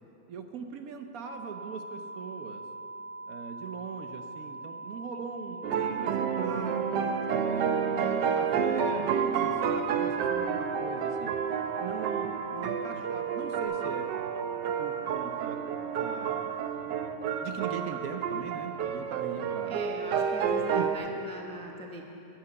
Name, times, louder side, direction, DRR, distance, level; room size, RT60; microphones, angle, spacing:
voice 1, 0.3-2.6 3.3-7.7 8.0-11.3 11.8-14.1 14.8-15.6 16.0-16.6 17.4-19.8 20.7-20.9, right 6 dB, 65° right, 6 dB, 1.0 m, -41 dB
sound 1, 1.2-13.6, right 2 dB, 80° left, 2.9 m, -42 dB
sound 2, 5.6-21.0, right 7 dB, 85° right, 1.3 m, -30 dB
voice 2, 19.7-22.1, right 1 dB, 5° left, 1 dB, 0.4 m, -42 dB
12.0 x 7.7 x 8.1 m, 3.0 s
omnidirectional pair, 1.8 m